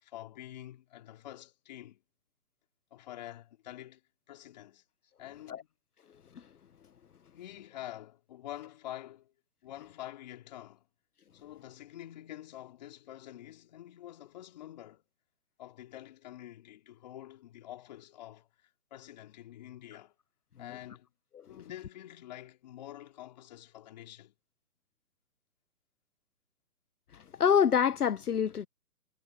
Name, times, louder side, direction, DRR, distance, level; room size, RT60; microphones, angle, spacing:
voice 1, 0.0-2.0 2.9-4.0 4.3-4.8 5.2-5.7 7.3-9.3 9.6-10.9 11.3-15.0 15.6-20.1 20.6-21.1 21.5-24.3, left 13 dB, 25° left, 3.0 m, -47 dB
voice 2, 27.1-28.7, left 8 dB, 65° left, 1.1 m, -26 dB
hypercardioid pair, 170°, 50 cm